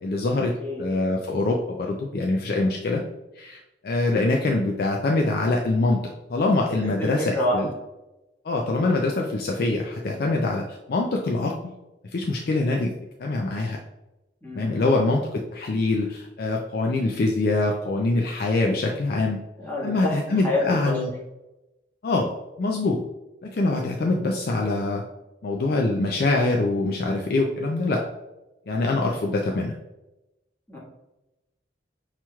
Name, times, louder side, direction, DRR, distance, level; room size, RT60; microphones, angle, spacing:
voice 1, 0.0-3.0 3.4-7.7 8.4-11.7 12.1-12.9 13.2-13.8 14.6-19.4 19.8-21.1 22.0-23.0 23.4-25.0 25.4-28.0 28.7-29.7, left 2 dB, 55° left, 0 dB, 0.4 m, -24 dB
voice 2, 7.0-7.6 14.4-14.8 19.6-21.0 30.7-30.8, left 1 dB, 10° left, -7 dB, 1.3 m, -27 dB
5.7 x 3.0 x 2.3 m, 0.97 s
head